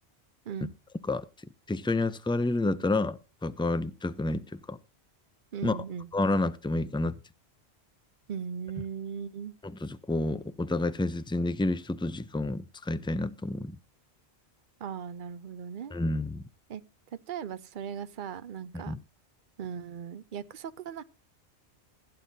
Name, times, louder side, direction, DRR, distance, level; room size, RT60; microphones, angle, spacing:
voice 1, 1.7-4.8 5.6-5.8 6.1-7.2 9.6-13.8 15.9-16.4 18.9-19.0, left 2 dB, 5° left, 0.4 m, -29 dB
voice 2, 5.5-6.1 8.3-9.5 14.8-16.0 16.7-16.8 17.1-18.9 19.6-21.0, right 7 dB, 55° right, 0.8 m, -38 dB
15.5 x 9.3 x 2.7 m
omnidirectional pair, 1.1 m